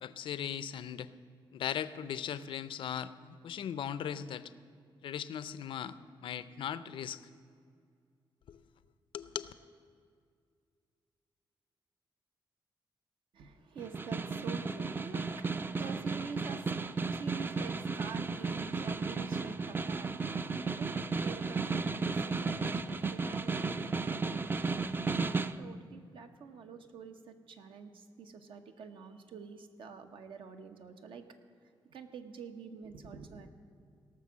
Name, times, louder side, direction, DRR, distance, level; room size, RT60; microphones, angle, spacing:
voice 1, 0.0-1.1 1.5-4.5 5.0-6.0 6.2-7.2 8.5-8.6 9.1-9.5, left 9 dB, 75° left, 15 dB, 0.5 m, -38 dB
voice 2, 13.3-31.2 31.8-33.5, right 5 dB, 80° right, 6 dB, 1.0 m, -47 dB
Snare drum, 13.8-25.6, right 4 dB, 25° right, 0.4 m, -34 dB
17.5 x 6.1 x 7.3 m, 2.3 s
wide cardioid pair, 125°, 9 cm